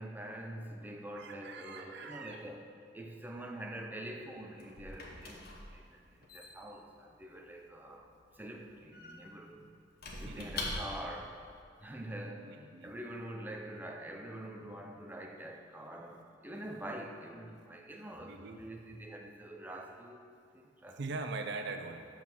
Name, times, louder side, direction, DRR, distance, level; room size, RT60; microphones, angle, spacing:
voice 1, 0.0-9.7 10.2-11.4 11.8-20.3 20.5-21.0, right 1 dB, 10° right, 2 dB, 0.5 m, -45 dB
voice 2, 1.2-2.4 10.1-10.6 12.4-12.9 18.2-18.6 21.0-22.2, right 3 dB, 65° right, 6 dB, 0.6 m, -42 dB
Squeak / Wood, 4.1-11.2, left 2 dB, 55° left, 1.1 m, -45 dB
7.0 x 5.6 x 5.9 m, 2.3 s
head